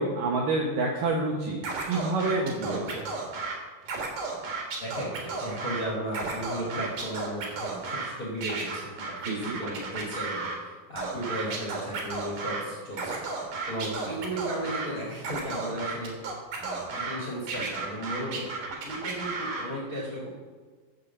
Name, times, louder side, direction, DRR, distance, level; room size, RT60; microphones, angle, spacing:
voice 1, 0.0-2.8 9.3-9.6 13.7-14.2, right 2 dB, 75° right, 0 dB, 1.9 m, -28 dB
Scratching (performance technique), 1.6-3.5 3.8-5.8 6.1-8.1 8.4-10.6 11.0-12.6 12.9-14.9 15.2-17.2 17.5-19.7, right 4 dB, 60° right, 2.7 m, -33 dB
voice 2, 4.8-13.3 13.7-16.2 16.6-18.5 18.8-20.3, right 1 dB, 50° left, -4 dB, 1.0 m, -35 dB
6.9 x 6.6 x 7.0 m, 1.5 s
omnidirectional pair, 4.9 m